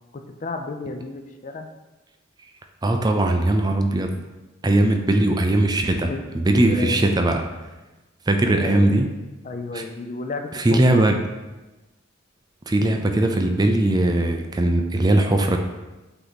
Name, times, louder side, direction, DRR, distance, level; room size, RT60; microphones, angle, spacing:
voice 1, 0.1-1.7 6.1-6.2 6.6-7.1 8.5-8.9 9.4-11.1, left 3 dB, 40° left, 5 dB, 0.4 m, -32 dB
voice 2, 2.8-4.1 4.6-6.1 6.4-7.5 8.3-9.1 9.7-9.8 10.5-11.2 12.7-15.6, right 1 dB, 20° right, 4 dB, 0.4 m, -19 dB
8.0 x 3.0 x 4.0 m, 1.1 s
head